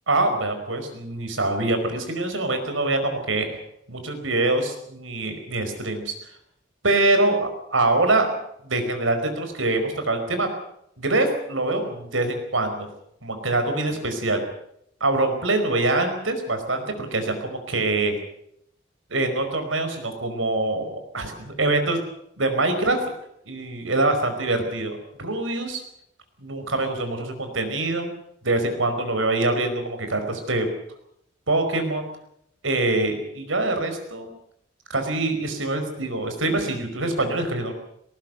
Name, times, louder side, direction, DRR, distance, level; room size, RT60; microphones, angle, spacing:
voice 1, 0.1-3.5 3.9-6.1 6.8-8.3 8.6-10.5 11.0-12.9 13.2-14.4 15.0-18.1 19.1-21.3 21.6-22.0 22.4-23.0 23.5-25.8 26.4-28.1 28.4-30.7 31.5-32.1 32.6-34.3 34.9-37.7, right 2 dB, 90° right, 7 dB, 5.0 m, -24 dB
19.5 x 19.0 x 8.0 m, 0.73 s
head